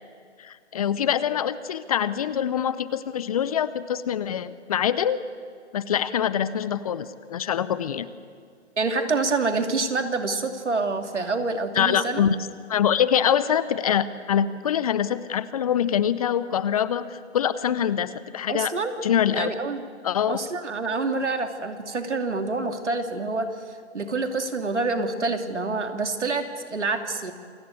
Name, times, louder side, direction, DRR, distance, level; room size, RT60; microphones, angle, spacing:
voice 1, 0.4-5.2 5.7-8.1 11.7-12.4 12.7-18.7 19.0-19.5 20.0-20.4, left 9 dB, 30° left, 15 dB, 0.7 m, -24 dB
voice 2, 8.8-12.2 18.5-19.0 19.3-19.9 20.3-23.5 23.9-27.3, right 3 dB, 80° right, 6 dB, 2.8 m, -27 dB
27.5 x 17.0 x 8.4 m, 2.2 s
figure-of-eight pair, 145°, 35 cm